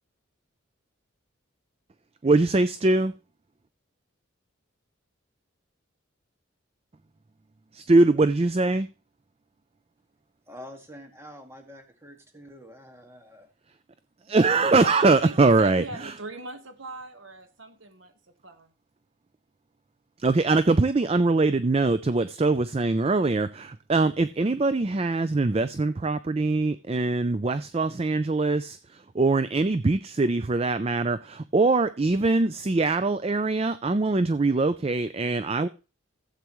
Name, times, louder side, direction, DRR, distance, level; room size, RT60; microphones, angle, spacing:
voice 1, 2.2-3.1 7.7-8.9 14.3-16.2 20.2-35.7, right 3 dB, 30° right, 0.4 m, -23 dB
voice 2, 10.5-13.5, equal, 15° right, 1.9 m, -46 dB
voice 3, 14.7-18.1 18.4-18.7, right 3 dB, 70° right, 1.5 m, -39 dB
15.5 x 8.2 x 3.1 m
head